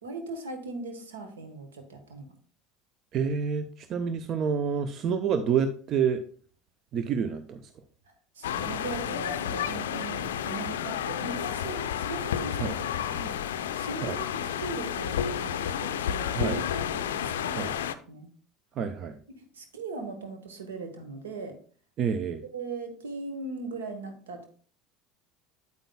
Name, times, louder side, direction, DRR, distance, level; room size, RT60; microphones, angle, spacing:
voice 1, 0.0-2.3 8.3-12.7 13.1-13.4 13.7-14.3 14.6-16.6 17.2-17.7 18.1-18.3 19.3-21.5 22.5-24.5, right 3 dB, 75° right, 6 dB, 1.2 m, -39 dB
voice 2, 3.1-6.2 6.9-7.7 12.6-12.7 14.0-14.2 16.3-16.6 17.6-17.7 18.8-19.2 22.0-22.4, right 7 dB, 45° right, 10 dB, 0.5 m, -28 dB
sound 1, 8.4-18.0, left 9 dB, 70° left, 0.4 m, -31 dB
8.9 x 8.2 x 2.2 m, 0.43 s
figure-of-eight pair, 70°, 0 cm